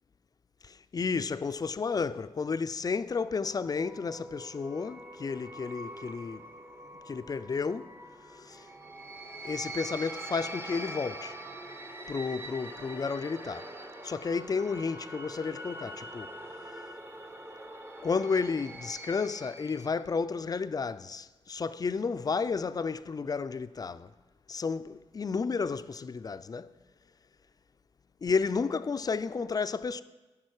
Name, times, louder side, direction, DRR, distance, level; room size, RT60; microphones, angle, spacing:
voice 1, 0.6-6.5 7.1-7.9 8.4-8.7 9.4-11.4 12.1-13.7 14.0-16.3 18.0-24.1 24.5-26.7 28.2-30.0, left 5 dB, 35° left, 0.4 m, -32 dB
sound 1, 3.2-20.0, right 1 dB, 20° right, 0.8 m, -44 dB
10.5 x 5.6 x 4.8 m
supercardioid pair, 45°, 11 cm